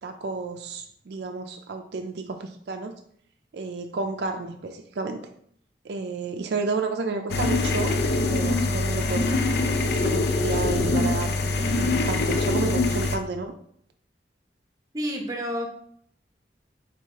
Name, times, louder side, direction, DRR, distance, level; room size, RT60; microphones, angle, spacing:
voice 1, 0.0-2.9 3.5-5.2 5.8-7.9 8.2-9.3 10.0-13.5, right 4 dB, 70° right, 5 dB, 0.4 m, -31 dB
sound 1, 7.3-13.2, left 2 dB, 65° left, 0.4 m, -24 dB
voice 2, 14.9-15.7, equal, 20° right, 1 dB, 0.8 m, -29 dB
4.0 x 2.8 x 4.6 m, 0.65 s
head